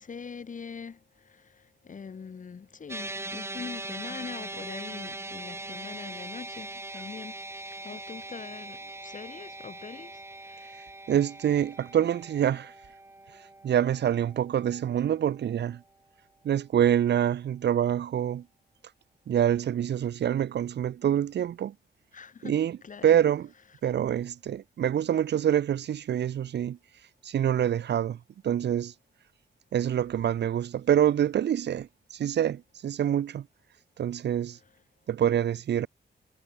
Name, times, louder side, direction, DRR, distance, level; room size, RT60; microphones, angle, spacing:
voice 1, 0.0-10.8 22.1-22.6 22.8-23.1, left 6 dB, 45° left, 1.8 m, -43 dB
sound 1, 2.9-15.3, right 2 dB, 15° right, 1.4 m, -41 dB
voice 2, 10.7-12.7 13.3-15.8 16.4-18.5 19.3-21.7 22.4-23.5 23.8-26.8 27.2-28.9 29.7-33.5 34.0-34.6 35.1-35.9, right 10 dB, 75° right, 0.7 m, -26 dB
wide cardioid pair, 120°, 18 cm